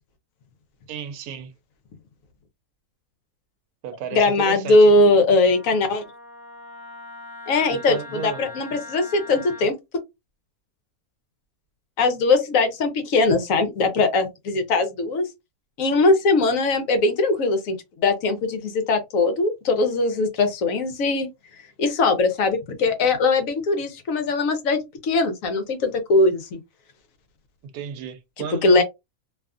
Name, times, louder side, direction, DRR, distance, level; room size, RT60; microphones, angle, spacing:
voice 1, 0.9-1.5 3.8-4.9 7.7-8.5 27.6-28.8, right 8 dB, 80° right, 1.0 m, -33 dB
voice 2, 4.1-6.0 7.5-9.7 12.0-15.3 15.8-21.3 21.8-26.6 28.6-28.8, left 3 dB, 70° left, 1.0 m, -20 dB
Wind instrument woodwind instrument, 5.4-9.7, left 3 dB, 30° left, 0.4 m, -41 dB
2.6 x 2.4 x 2.4 m
omnidirectional pair, 1.5 m